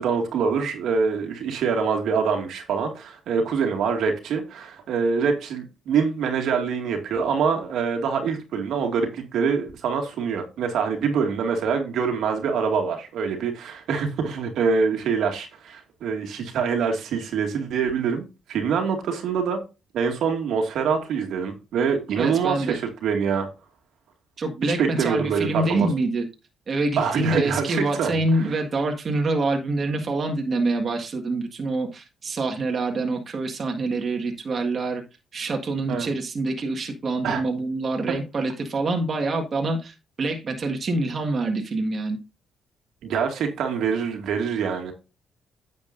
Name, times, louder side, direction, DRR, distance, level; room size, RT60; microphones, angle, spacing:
voice 1, 0.0-19.6 19.9-23.5 24.6-25.9 27.0-28.1 35.9-36.1 37.2-37.4 43.1-44.9, right 6 dB, 75° right, 2.1 m, -25 dB
voice 2, 22.2-22.8 24.4-26.2 26.7-35.0 35.3-42.2, right 2 dB, 45° right, 1.7 m, -26 dB
9.5 x 7.5 x 2.6 m
cardioid pair, 90°, 0 cm